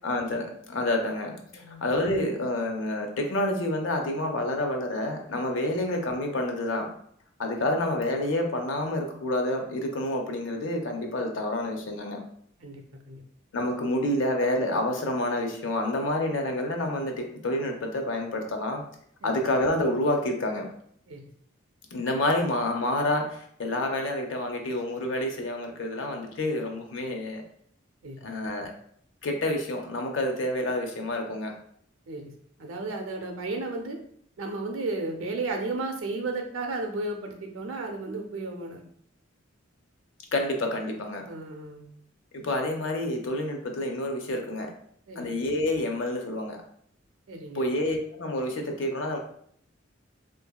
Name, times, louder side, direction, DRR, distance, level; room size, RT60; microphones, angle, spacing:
voice 1, 0.0-6.9 7.4-12.2 13.5-18.8 19.2-20.7 21.9-27.4 28.2-28.7 29.2-31.5 40.3-41.2 42.3-44.7 45.2-46.6 47.5-49.2, left 1 dB, 65° left, 3 dB, 0.5 m, -28 dB
voice 2, 1.5-1.8 12.6-13.2 19.2-19.3 21.1-21.3 28.0-28.3 32.1-32.3 32.6-34.0 34.4-38.8 41.3-41.9 45.1-45.3 47.3-47.6, right 3 dB, 80° right, 3 dB, 0.5 m, -34 dB
2.7 x 2.6 x 2.2 m, 0.65 s
head